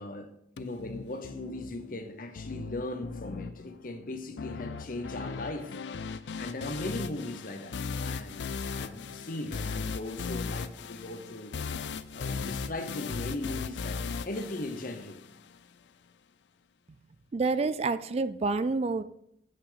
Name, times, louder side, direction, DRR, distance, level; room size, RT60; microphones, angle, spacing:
voice 1, 0.0-5.8 6.4-7.8 8.0-8.5 8.7-11.5 12.1-15.2, left 2 dB, 50° left, 0.9 m, -38 dB
sound 1, 0.6-15.6, left 5 dB, 85° left, 0.5 m, -38 dB
voice 2, 17.3-19.0, right 3 dB, 35° right, 0.4 m, -28 dB
9.1 x 5.8 x 5.1 m
head